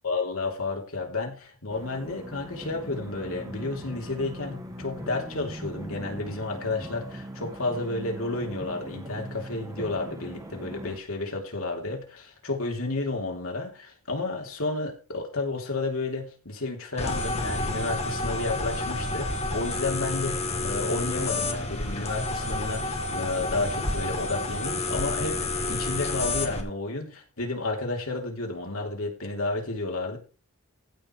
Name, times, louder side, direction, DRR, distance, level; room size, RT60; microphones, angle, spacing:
voice 1, 0.0-30.2, left 3 dB, 70° left, 1 dB, 3.3 m, -31 dB
sound 1, 1.7-11.0, right 1 dB, 15° right, 1.6 m, -40 dB
sound 2, 17.0-26.6, left 2 dB, 30° left, 1.8 m, -29 dB
15.0 x 6.6 x 4.7 m, 0.35 s
head